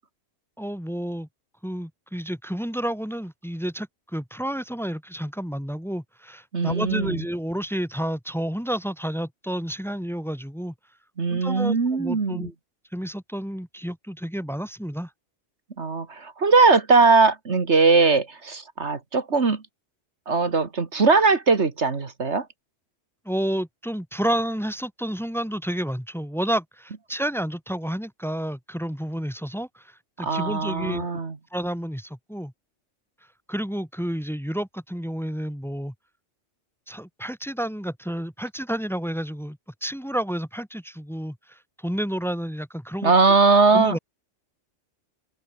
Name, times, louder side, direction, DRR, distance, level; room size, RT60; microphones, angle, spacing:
voice 1, 0.6-1.3 1.6-10.7 11.3-12.5 12.9-15.1 23.2-31.1 31.5-32.5 33.5-35.9 36.9-43.1 43.7-44.0, equal, ahead, 2.8 m, -30 dB
voice 2, 6.5-7.2 11.2-12.5 15.8-19.6 20.3-22.5 30.2-31.3 43.0-44.0, right 4 dB, 65° right, 2.2 m, -20 dB
omnidirectional pair, 1.3 m